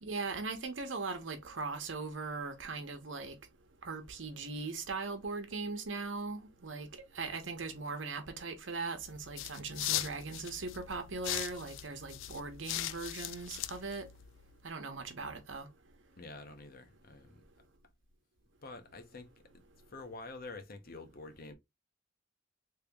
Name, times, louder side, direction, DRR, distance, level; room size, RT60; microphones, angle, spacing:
voice 1, 0.0-3.3 3.8-14.1 14.6-15.7, right 3 dB, 85° right, 1.0 m, -39 dB
sound 1, 9.0-14.5, left 13 dB, 85° left, 0.3 m, -40 dB
voice 2, 16.1-17.4 18.6-19.3 19.9-21.5, left 3 dB, 50° left, 0.8 m, -47 dB
3.3 x 2.9 x 3.5 m
head